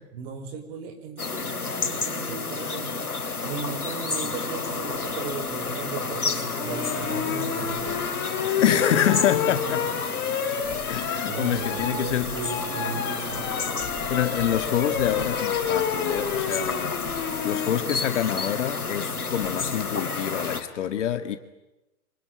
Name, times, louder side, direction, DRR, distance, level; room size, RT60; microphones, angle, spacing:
voice 1, 0.1-8.1 9.4-10.0 10.5-10.6 11.3-13.5, right 6 dB, 40° right, 5.1 m, -37 dB
sound 1, 1.2-20.6, left 4 dB, 85° left, 3.3 m, -31 dB
sound 2, 6.6-17.8 19.4-19.8, left 8 dB, 25° left, 3.3 m, -30 dB
voice 2, 8.6-9.8 10.9-12.3 14.1-17.0 17.4-21.4, left 10 dB, 55° left, 1.9 m, -26 dB
25.5 x 24.5 x 9.1 m
figure-of-eight pair, 120°, 43 cm